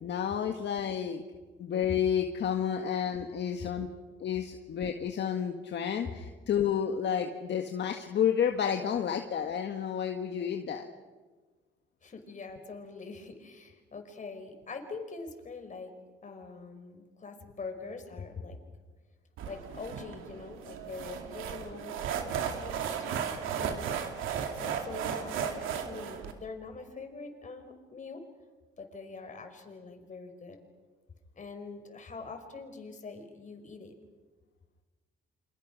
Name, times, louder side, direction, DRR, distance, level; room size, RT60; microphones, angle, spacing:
voice 1, 0.0-1.2 1.6-3.9 4.2-10.9, left 8 dB, 60° left, 4 dB, 1.7 m, -30 dB
voice 2, 12.0-15.9 16.2-18.6 19.5-21.9 22.2-23.9 24.6-28.2 28.8-30.6 31.4-34.0, left 4 dB, 40° left, 5 dB, 5.3 m, -44 dB
sound 1, 19.4-26.3, right 8 dB, 90° right, 2.7 m, -35 dB
29.0 x 26.0 x 6.3 m, 1.3 s
cardioid pair, 90°, 20 cm